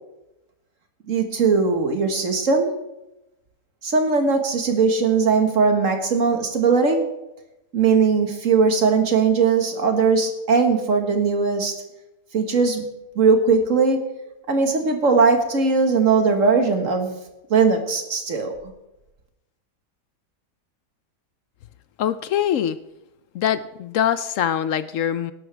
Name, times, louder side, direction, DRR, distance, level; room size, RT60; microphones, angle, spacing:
voice 1, 1.1-2.7 3.8-7.0 7.7-11.7 12.3-12.9 13.2-14.0 14.5-17.2 17.5-18.5, right 4 dB, 50° right, 5 dB, 1.9 m, -19 dB
voice 2, 22.0-22.8 23.3-25.3, left 9 dB, 70° left, 14 dB, 0.8 m, -23 dB
18.0 x 12.0 x 3.4 m, 0.94 s
omnidirectional pair, 1.8 m